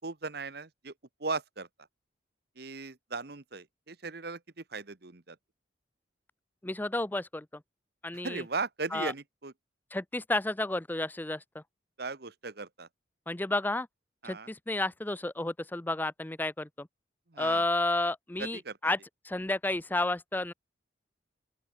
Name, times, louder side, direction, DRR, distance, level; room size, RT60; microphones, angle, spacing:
voice 1, 0.0-0.9 1.2-1.7 2.6-5.4 8.1-9.5 12.0-12.9 14.2-14.5 17.3-17.6 18.4-18.8, right 4 dB, 55° right, 1.2 m, -37 dB
voice 2, 6.6-7.5 8.0-8.4 8.9-9.1 9.9-11.6 13.3-13.9 14.2-16.9 17.4-19.0 19.2-20.5, left 2 dB, 10° left, 0.5 m, -31 dB
open air
head